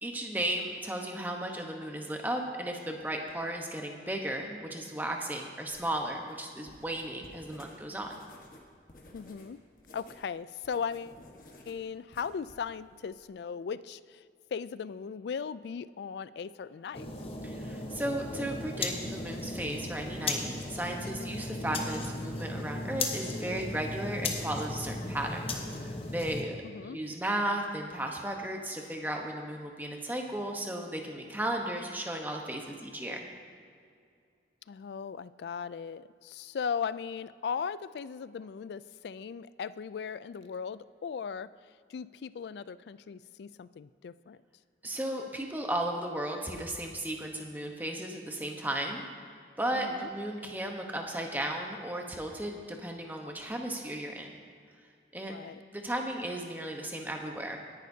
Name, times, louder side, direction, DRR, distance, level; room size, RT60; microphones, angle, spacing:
voice 1, 0.0-8.2 17.4-33.3 44.8-49.1 49.6-54.3 55.1-55.3 55.7-57.6, right 1 dB, 10° right, 2 dB, 1.0 m, -35 dB
sound 1, 5.7-10.3 10.5-13.2, left 1 dB, 50° left, 1.3 m, -54 dB
voice 2, 9.1-9.6 9.9-11.2 11.7-14.2 14.5-17.1 26.6-27.0 34.7-41.5 41.9-44.4 49.7-50.1 55.3-55.6, left 6 dB, 65° left, 16 dB, 0.3 m, -38 dB
sound 2, 16.9-26.4, left 2 dB, 30° left, 1.0 m, -36 dB
18.5 x 10.5 x 2.8 m, 2.2 s
head